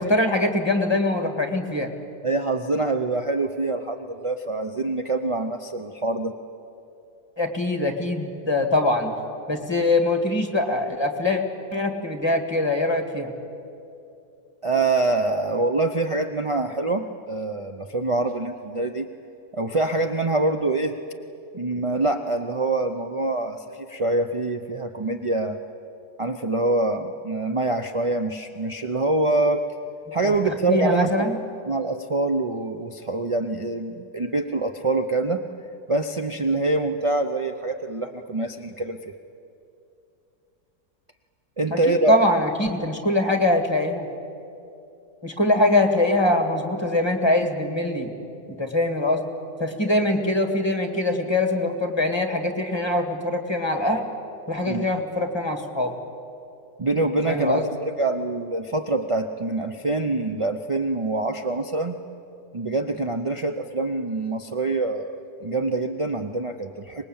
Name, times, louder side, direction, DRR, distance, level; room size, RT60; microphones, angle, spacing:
voice 1, 0.0-1.9 7.4-9.1 9.5-11.4 11.7-13.3 30.2-31.4 41.7-44.1 45.2-48.1 48.5-49.3 49.6-54.1 54.5-55.9 57.3-57.6, left 1 dB, 15° left, 5 dB, 1.9 m, -23 dB
voice 2, 2.2-6.3 14.6-19.1 19.5-20.9 21.5-25.6 26.2-29.7 30.1-31.4 31.7-35.4 35.9-39.1 41.6-42.2 54.6-54.9 56.8-62.0 62.5-67.0, right 2 dB, 40° right, 6 dB, 0.4 m, -25 dB
25.0 x 20.0 x 8.8 m, 2.7 s
omnidirectional pair, 1.7 m